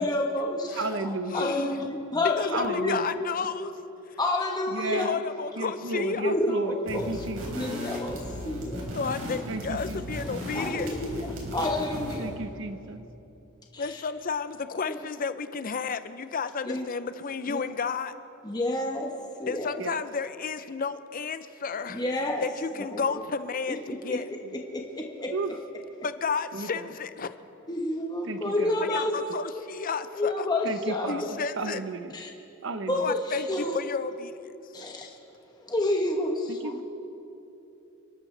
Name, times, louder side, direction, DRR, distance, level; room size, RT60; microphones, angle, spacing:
voice 1, 0.0-0.8 1.3-3.0 4.2-5.1 6.2-7.1 7.5-8.2 8.4-8.8 10.5-12.3 13.7-13.9 14.9-15.0 16.7-16.9 17.5-17.6 18.4-19.1 19.4-19.7 21.9-22.4 22.9-23.2 24.1-24.2 24.7-25.3 27.7-29.1 30.1-31.3 32.1-32.3 32.9-33.2 33.5-33.8 34.7-35.1 35.6-36.8, left 1 dB, 20° left, 1 dB, 1.1 m, -29 dB
voice 2, 0.7-1.5 2.5-3.1 4.7-5.2 5.6-7.7 9.5-10.2 12.2-13.0 19.8-20.0 25.3-25.6 26.5-26.9 28.2-28.9 30.6-32.1 32.6-33.1 36.5-36.8, right 3 dB, 60° right, 9 dB, 0.8 m, -34 dB
voice 3, 1.3-1.9 2.4-3.7 4.1-4.2 5.0-6.3 7.8-8.0 8.9-10.9 13.8-18.1 19.5-22.0 22.4-24.3 26.0-27.3 28.8-30.5 31.1-31.8 32.9-34.4 34.9-35.1, left 5 dB, 40° left, 12 dB, 0.5 m, -32 dB
sound 1, 6.9-12.3, left 1 dB, 80° right, 3.9 m, -36 dB
28.5 x 12.0 x 3.3 m, 3.0 s
head